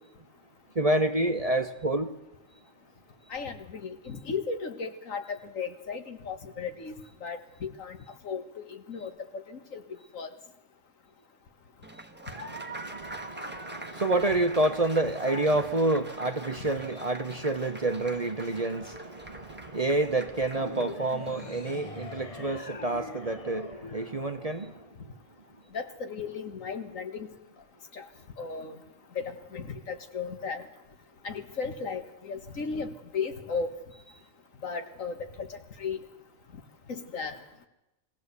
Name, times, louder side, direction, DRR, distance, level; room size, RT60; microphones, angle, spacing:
voice 1, 0.8-2.1 12.3-24.8, right 2 dB, 30° right, 7 dB, 0.8 m, -28 dB
voice 2, 3.3-6.9 7.2-8.0 8.2-9.8 10.1-10.3 25.7-27.3 27.9-28.1 28.4-28.8 29.2-30.6 31.2-33.7 34.6-36.0 36.9-37.4, left 5 dB, 75° left, 7 dB, 1.9 m, -35 dB
Applause, 11.8-22.2, right 1 dB, 10° right, 1.1 m, -44 dB
sound 1, 20.5-25.0, left 3 dB, 30° left, 0.9 m, -43 dB
22.0 x 16.0 x 8.2 m, 0.95 s
omnidirectional pair, 1.4 m